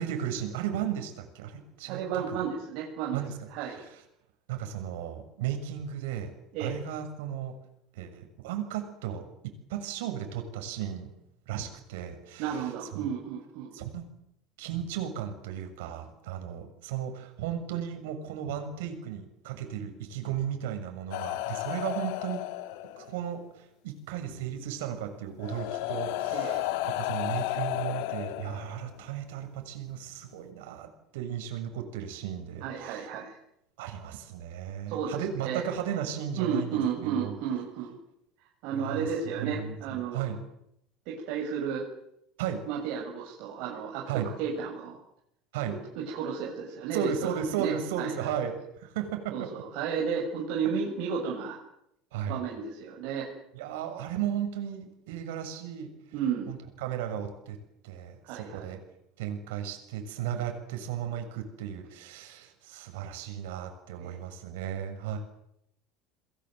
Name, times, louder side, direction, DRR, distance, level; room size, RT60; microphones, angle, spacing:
voice 1, 0.0-2.4 3.1-4.0 4.5-6.3 6.6-7.6 7.9-9.3 9.7-11.1 11.5-13.0 13.7-14.1 14.6-22.4 23.0-33.1 33.8-37.4 38.7-39.1 39.4-40.4 42.4-42.6 44.1-44.3 45.5-45.8 46.9-49.5 52.1-52.4 53.5-55.9 56.5-57.6 57.8-58.8 59.2-65.2, right 9 dB, 85° right, 5 dB, 7.0 m, -35 dB
voice 2, 1.9-3.2 3.5-3.8 6.5-6.8 12.4-13.8 26.3-26.6 32.6-33.4 34.9-35.6 36.4-38.0 38.6-40.4 41.1-41.9 42.7-45.0 45.7-48.3 49.3-51.6 52.3-53.3 56.1-56.5 58.2-58.7 64.0-64.2, right 7 dB, 50° right, -2 dB, 7.1 m, -33 dB
sound 1, 21.1-23.3 24.6-24.7 25.4-29.0 30.1-30.3, left 16 dB, 65° left, 1.5 m, -33 dB
29.5 x 22.0 x 8.2 m, 0.79 s
cardioid pair, 170°, 0 cm